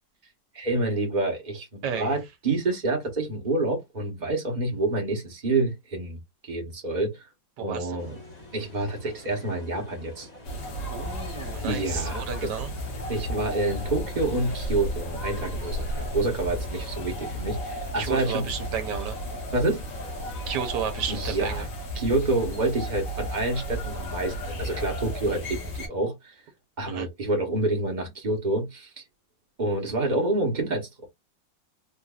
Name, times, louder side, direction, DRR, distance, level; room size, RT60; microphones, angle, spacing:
voice 1, 0.5-7.3 7.6-8.2 8.5-10.3 11.6-12.5 13.1-18.5 19.5-19.8 21.1-21.7 21.9-26.4 26.8-29.0 29.6-31.1, right 2 dB, 30° right, 1.0 m, -28 dB
voice 2, 1.8-2.2 7.6-8.0 10.9-12.7 18.0-19.2 20.5-21.7 26.9-27.1, right 7 dB, 65° right, 1.5 m, -32 dB
sound 1, 8.0-21.5, left 2 dB, 25° left, 1.0 m, -45 dB
sound 2, 10.4-25.9, equal, 65° left, 1.9 m, -34 dB
4.5 x 2.6 x 2.3 m
omnidirectional pair, 2.1 m